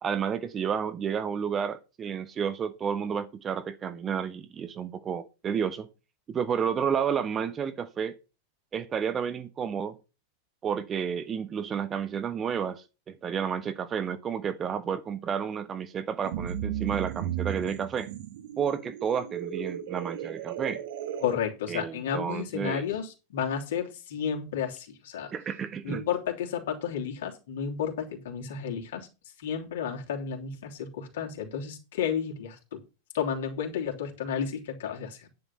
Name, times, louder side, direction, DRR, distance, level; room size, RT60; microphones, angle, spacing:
voice 1, 0.0-5.9 6.3-8.1 8.7-10.0 10.6-18.1 18.6-20.8 21.7-22.9 25.3-26.1, right 7 dB, 25° right, 1.0 m, -31 dB
sound 1, 16.2-21.3, right 10 dB, 55° right, 1.4 m, -35 dB
voice 2, 21.2-25.3 25.8-29.1 29.4-32.8 33.1-35.3, left 7 dB, 60° left, 3.2 m, -32 dB
10.5 x 10.0 x 4.2 m
figure-of-eight pair, 90°, 0 cm